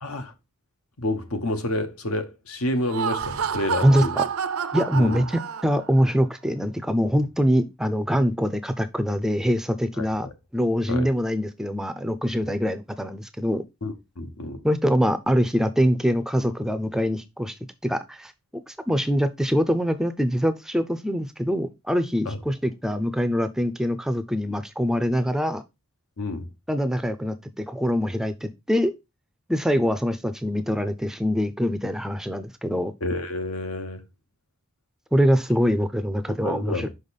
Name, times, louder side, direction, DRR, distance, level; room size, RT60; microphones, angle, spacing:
voice 1, 0.0-0.3 1.0-4.2 4.9-5.2 10.0-10.3 10.9-11.1 12.4-12.5 13.8-14.6 22.3-22.4 26.2-26.5 33.0-34.0 36.3-36.9, left 1 dB, 80° left, 1.0 m, -29 dB
Laughter, 2.7-6.0, right 7 dB, 85° right, 0.6 m, -29 dB
voice 2, 3.8-4.2 4.7-5.2 5.6-10.3 10.5-13.6 14.6-17.5 17.8-18.3 18.7-25.6 26.7-28.9 29.5-32.9 35.1-36.9, equal, ahead, 0.4 m, -24 dB
5.6 x 5.2 x 4.0 m
head